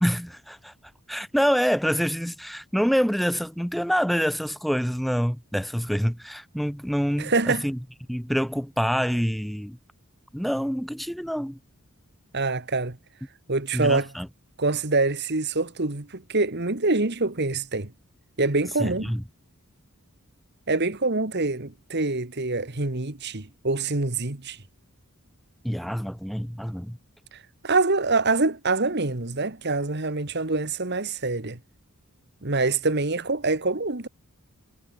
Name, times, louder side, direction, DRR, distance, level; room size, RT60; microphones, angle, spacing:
voice 1, 0.0-0.7 1.1-7.8 8.1-9.8 10.3-11.6 13.7-14.3 18.8-19.2 25.6-27.0, equal, ahead, 1.0 m, -26 dB
voice 2, 7.2-7.7 12.3-13.0 13.5-14.1 14.6-17.9 18.4-19.1 20.7-24.6 27.3-27.4 27.6-31.6 32.4-34.1, right 3 dB, 50° right, 1.8 m, -25 dB
head